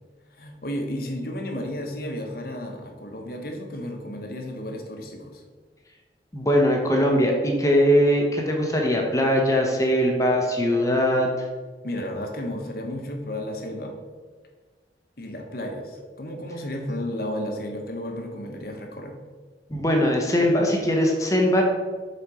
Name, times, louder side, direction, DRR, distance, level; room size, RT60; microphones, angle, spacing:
voice 1, 0.3-5.4 11.8-13.9 15.2-19.2, left 1 dB, 55° left, 3 dB, 1.1 m, -33 dB
voice 2, 6.3-11.5 19.7-21.6, equal, 20° left, 1 dB, 0.9 m, -21 dB
6.9 x 4.3 x 4.9 m, 1.4 s
head